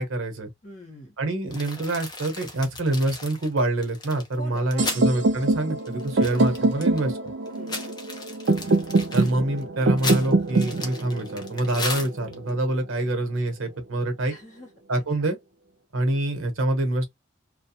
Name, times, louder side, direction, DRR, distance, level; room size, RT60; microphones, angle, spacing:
voice 1, 0.0-0.5 1.2-7.2 9.1-14.3 14.9-15.4 15.9-17.1, right 1 dB, 85° right, 0.9 m, -26 dB
voice 2, 0.6-1.2 4.4-5.1 7.5-7.9 14.3-14.7 15.2-15.3 16.1-16.2, right 1 dB, 35° left, 1.0 m, -43 dB
sound 1, 1.5-5.1 5.4-5.5 5.8-7.1 7.5-12.5, left 3 dB, 20° left, 0.5 m, -35 dB
sound 2, 4.8-12.7, right 3 dB, 60° right, 0.4 m, -25 dB
2.3 x 2.2 x 2.8 m
head